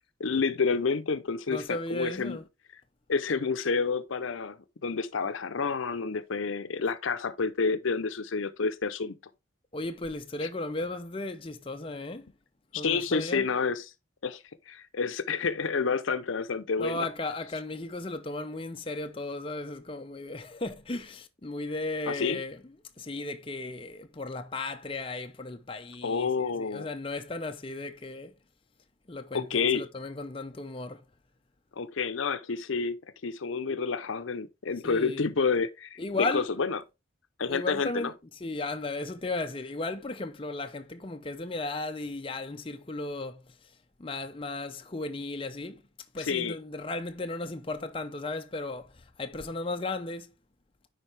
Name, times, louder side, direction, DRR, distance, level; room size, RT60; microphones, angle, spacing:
voice 1, 0.2-2.4 3.1-9.1 10.4-10.5 12.7-13.8 14.2-14.4 14.7-17.0 22.1-22.4 26.0-26.9 29.3-29.9 31.8-33.0 33.2-36.8 37.4-38.1 46.2-46.6, left 5 dB, 85° left, 0.7 m, -29 dB
voice 2, 1.5-2.4 9.7-12.3 12.7-13.5 16.8-22.6 23.0-28.3 29.1-31.0 34.8-35.3 36.0-36.5 37.5-38.1 38.4-43.7 44.0-45.8 46.1-50.3, left 2 dB, 25° left, 0.6 m, -35 dB
9.9 x 4.1 x 3.4 m
head